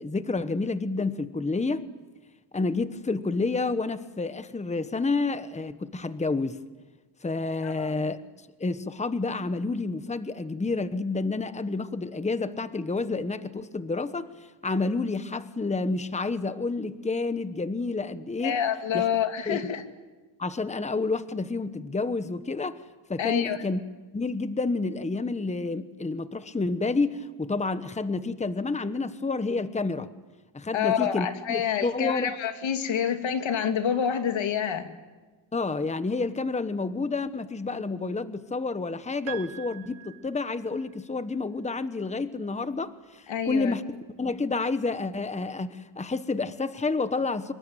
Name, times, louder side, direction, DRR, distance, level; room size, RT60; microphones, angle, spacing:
voice 1, 0.0-1.9 2.5-6.6 7.2-8.2 8.6-14.3 14.6-18.6 18.9-19.1 19.5-19.6 20.4-22.8 23.1-23.8 24.1-30.1 30.5-32.3 35.5-43.8 44.2-47.5, left 3 dB, 15° left, 12 dB, 1.1 m, -29 dB
voice 2, 18.4-19.8 23.2-23.6 30.7-34.9 43.3-43.7, left 8 dB, 90° left, 7 dB, 2.6 m, -27 dB
Piano, 39.3-41.0, right 12 dB, 85° right, 2.6 m, -43 dB
26.0 x 23.0 x 9.3 m, 1.3 s
wide cardioid pair, 125°, 45 cm